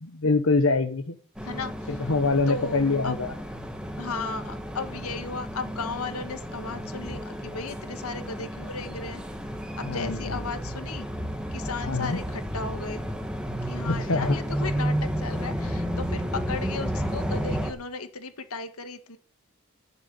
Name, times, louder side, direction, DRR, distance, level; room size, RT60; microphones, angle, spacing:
voice 1, 0.0-1.1 1.9-3.3 9.8-10.3 11.8-12.2 13.9-14.4, left 3 dB, 70° left, 6 dB, 1.0 m, -25 dB
voice 2, 1.4-2.0 2.5-3.2 4.0-9.2 9.8-11.1 11.5-13.0 13.6-19.2, left 4 dB, 90° left, 9 dB, 1.8 m, -35 dB
sound 1, 1.4-17.7, equal, 5° right, 1.4 m, -32 dB
11.0 x 7.0 x 8.9 m, 0.43 s
head